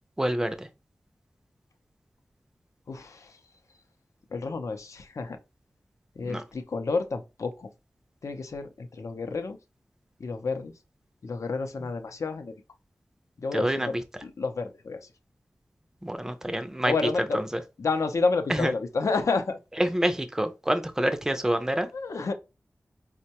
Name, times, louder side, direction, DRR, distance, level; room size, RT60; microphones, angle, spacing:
voice 1, 0.2-0.7 6.2-6.4 13.5-14.0 16.0-17.6 18.5-18.7 19.8-21.9, right 1 dB, 10° right, 0.4 m, -27 dB
voice 2, 2.9-3.4 4.3-5.4 6.2-7.7 8.2-9.6 10.2-10.7 11.2-12.6 13.4-13.9 14.2-15.1 16.9-17.4 17.8-19.6 21.9-22.3, left 4 dB, 75° left, 0.5 m, -30 dB
4.4 x 2.1 x 2.8 m
wide cardioid pair, 95°, 5 cm